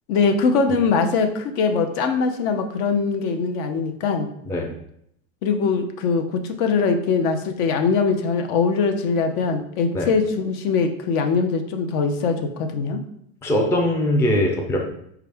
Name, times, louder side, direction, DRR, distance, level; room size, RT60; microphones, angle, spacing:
voice 1, 0.1-4.3 5.4-13.0, left 5 dB, 60° left, 6 dB, 0.7 m, -22 dB
voice 2, 13.4-14.8, left 1 dB, 10° left, 0 dB, 0.4 m, -21 dB
4.6 x 2.4 x 3.3 m, 0.72 s
supercardioid pair, 130°, 35 cm